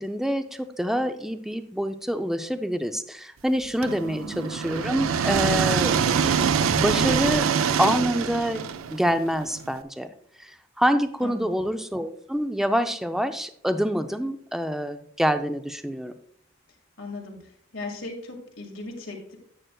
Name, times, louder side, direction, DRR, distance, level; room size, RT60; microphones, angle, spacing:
voice 1, 0.0-5.9 6.7-7.5 7.8-8.6 8.9-10.1 10.4-16.1, equal, ahead, 8 dB, 0.4 m, -26 dB
sound 1, 3.8-9.7, right 6 dB, 90° right, 0.4 m, -24 dB
voice 2, 4.0-4.4 11.2-11.5 17.0-19.4, left 2 dB, 70° left, 1 dB, 2.1 m, -38 dB
11.0 x 7.7 x 2.3 m, 0.65 s
head